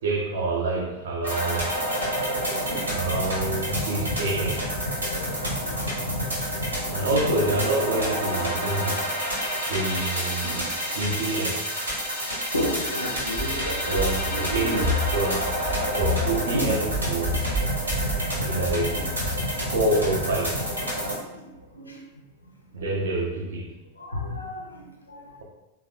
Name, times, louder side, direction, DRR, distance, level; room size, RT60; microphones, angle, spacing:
voice 1, 0.0-1.7 2.9-4.6 6.9-9.0 9.7-11.6 13.9-14.8 15.1-15.5 15.9-17.4 18.4-19.0 19.7-20.6 22.7-23.7, right 2 dB, 60° right, 1 dB, 0.5 m, -27 dB
sound 1, 1.2-21.2, equal, 75° right, 1.1 m, -29 dB
voice 2, 2.4-3.0 5.0-7.0 7.9-8.1 8.9-9.6 9.9-10.2 11.0-11.4 12.0-12.1 12.4-15.3 16.5-16.7 18.9-19.1 21.0-22.0 24.0-25.3, left 1 dB, 80° left, 1 dB, 0.5 m, -34 dB
Run, 13.3-20.3, left 1 dB, 10° right, 0.6 m, -31 dB
3.3 x 2.0 x 2.6 m, 1.0 s
figure-of-eight pair, 90°, 0 cm